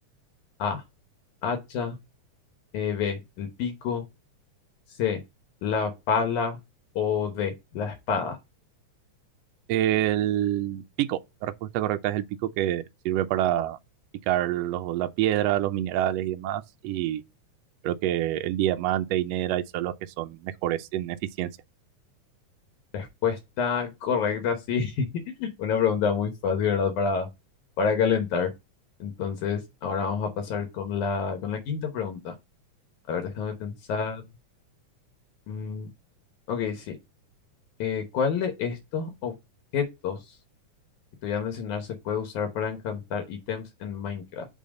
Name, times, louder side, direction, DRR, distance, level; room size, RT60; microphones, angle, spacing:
voice 1, 1.4-2.0 2.7-4.0 5.0-5.2 5.6-6.6 7.0-8.4 22.9-25.1 25.4-27.3 27.8-28.5 29.0-32.3 33.1-34.2 35.5-35.9 36.5-37.0 37.8-39.3 39.7-40.3 41.2-44.5, left 6 dB, 75° left, 2.4 m, -28 dB
voice 2, 9.7-13.8 14.3-17.2 17.8-21.5, right 13 dB, 90° right, 1.4 m, -27 dB
5.5 x 3.6 x 5.1 m
omnidirectional pair, 3.6 m